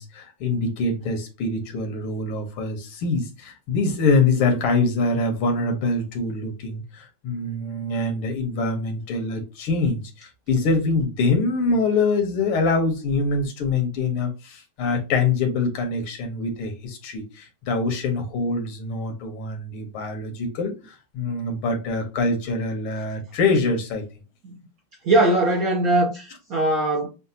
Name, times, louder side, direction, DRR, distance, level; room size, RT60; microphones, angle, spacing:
voice 1, 0.0-24.0, left 3 dB, 85° left, 1.9 m, -24 dB
voice 2, 25.0-27.1, right 2 dB, 65° right, 0.9 m, -20 dB
6.4 x 2.2 x 2.7 m
omnidirectional pair, 2.3 m